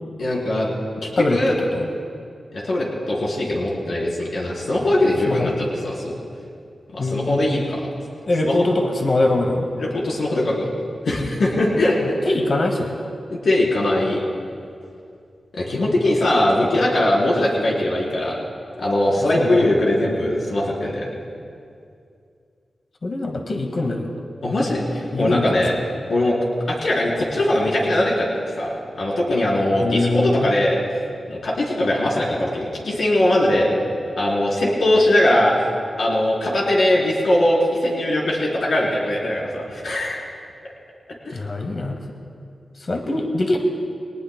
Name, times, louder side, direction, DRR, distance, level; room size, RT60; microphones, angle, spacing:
voice 1, 0.2-0.7 1.0-1.5 2.5-6.2 6.9-7.9 9.8-10.7 11.0-12.1 13.4-14.2 15.6-18.3 18.8-21.1 24.4-25.7 26.1-26.3 26.7-28.3 28.6-30.8 31.3-33.7 34.2-35.7 36.0-40.2 41.3-41.4, left 1 dB, 80° left, -4 dB, 3.8 m, -20 dB
voice 2, 1.2-1.9 5.3-5.5 7.0-7.5 8.3-9.7 11.7-13.0 19.3-19.6 23.0-24.1 25.1-25.6 29.8-30.5 41.3-42.0 42.8-43.6, left 2 dB, 60° left, 2 dB, 1.7 m, -23 dB
22.0 x 19.0 x 2.2 m, 2.4 s
cardioid pair, 50°, 0 cm